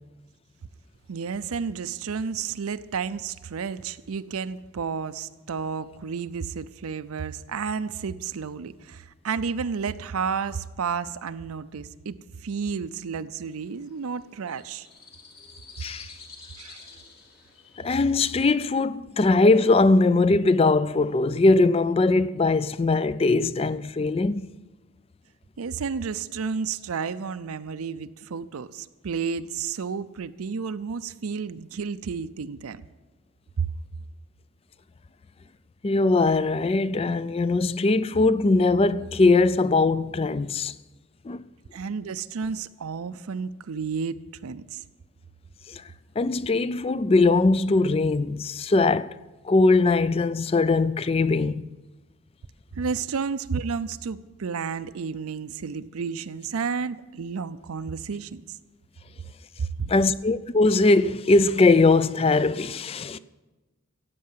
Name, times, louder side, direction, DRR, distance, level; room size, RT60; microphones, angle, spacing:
voice 1, 1.1-14.9 16.6-16.8 25.6-32.8 33.6-33.7 41.7-44.8 52.8-58.6 59.6-59.9, right 5 dB, 80° right, 0.5 m, -31 dB
sound 1, 13.5-18.7, left 4 dB, 45° left, 2.4 m, -49 dB
voice 2, 17.8-24.5 35.8-40.7 41.3-41.5 45.7-45.8 46.2-49.1 49.4-51.6 59.9-63.2, left 3 dB, 25° left, 0.3 m, -21 dB
15.0 x 8.6 x 7.4 m
head